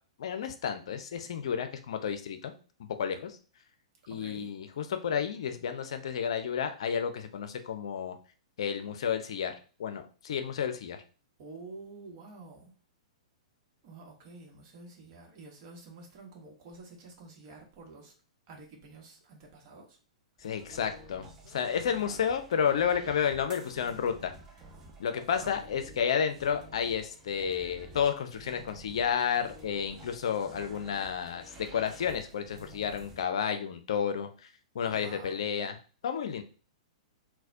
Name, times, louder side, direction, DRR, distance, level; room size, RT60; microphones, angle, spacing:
voice 1, 0.2-2.5 2.8-3.4 4.1-8.2 8.6-11.0 20.4-24.3 25.0-34.5 34.7-35.8 36.0-36.4, left 7 dB, 60° left, 7 dB, 0.5 m, -31 dB
voice 2, 4.1-4.5 11.4-12.7 13.8-18.1 18.5-20.0 25.4-25.6 34.9-35.4, right 3 dB, 40° right, 1 dB, 1.1 m, -49 dB
sound 1, 20.4-33.2, right 2 dB, 20° right, 0.8 m, -51 dB
4.0 x 2.2 x 2.6 m, 0.37 s
figure-of-eight pair, 105°, 3 cm